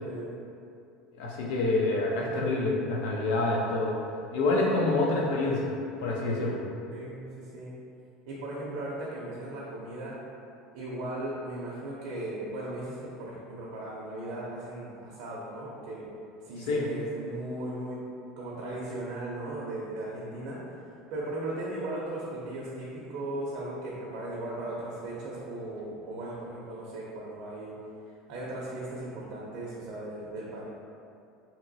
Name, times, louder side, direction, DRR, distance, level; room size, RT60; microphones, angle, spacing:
voice 1, 0.0-0.3 6.9-7.7 8.3-10.2 10.7-16.1 16.4-18.0 18.4-20.6 21.1-27.8 28.3-30.6, right 1 dB, 60° right, -5 dB, 0.5 m, -37 dB
voice 2, 1.2-4.0 4.3-5.7 6.0-6.6 16.6-16.9, left 2 dB, 75° left, -2 dB, 0.6 m, -27 dB
2.9 x 2.9 x 2.6 m, 2.5 s
cardioid pair, 155°, 0 cm